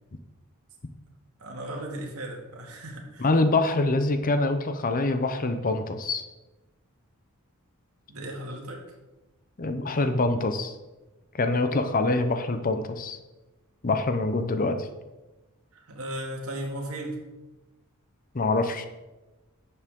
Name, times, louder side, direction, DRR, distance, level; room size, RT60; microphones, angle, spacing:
voice 1, 1.4-3.3 8.1-8.8 15.7-17.2, right 1 dB, 75° right, 1 dB, 2.0 m, -36 dB
voice 2, 3.2-6.2 9.6-10.8 11.3-13.2 13.8-14.9 18.3-18.9, left 2 dB, 40° left, 8 dB, 0.7 m, -25 dB
11.0 x 7.2 x 3.7 m, 1.1 s
head